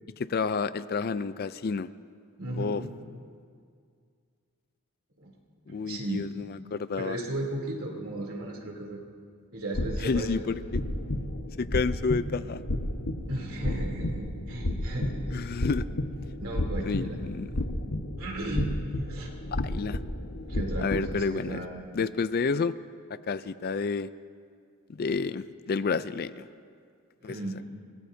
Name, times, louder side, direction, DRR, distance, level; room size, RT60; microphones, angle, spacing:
voice 1, 0.2-1.9 2.6-2.8 5.7-7.2 10.0-10.6 11.6-12.6 15.3-15.9 16.8-17.5 19.5-20.0 20.8-21.6 21.9-22.7 23.1-24.1 24.9-26.5 27.2-27.4, left 4 dB, 45° left, 14 dB, 0.4 m, -30 dB
voice 2, 2.4-2.9 5.2-5.3 5.7-6.3 7.0-9.0 9.5-10.3 13.3-15.5 16.4-17.2 18.2-18.8 19.1-19.3 20.5-21.8 27.2-27.6, right 1 dB, 70° right, -1 dB, 3.2 m, -35 dB
sound 1, 9.7-21.2, left 1 dB, 85° left, 1.3 m, -32 dB
25.5 x 19.5 x 2.7 m, 2.2 s
head